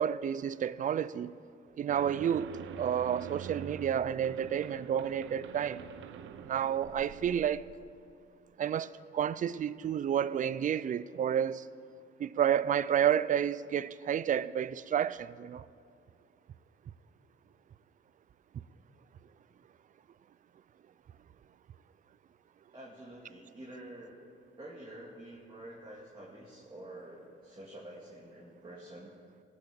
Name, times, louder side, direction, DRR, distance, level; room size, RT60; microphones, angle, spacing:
voice 1, 0.0-1.3 1.8-2.5 2.8-5.8 6.4-7.6 8.6-8.9 9.1-11.6 12.2-15.6, right 9 dB, 40° right, 0.4 m, -30 dB
sound 1, 1.9-8.0, right 8 dB, 80° right, 0.7 m, -45 dB
voice 2, 22.7-24.2 24.6-29.1, right 1 dB, 25° right, 2.1 m, -48 dB
17.5 x 6.4 x 7.4 m
cardioid pair, 90°, 20 cm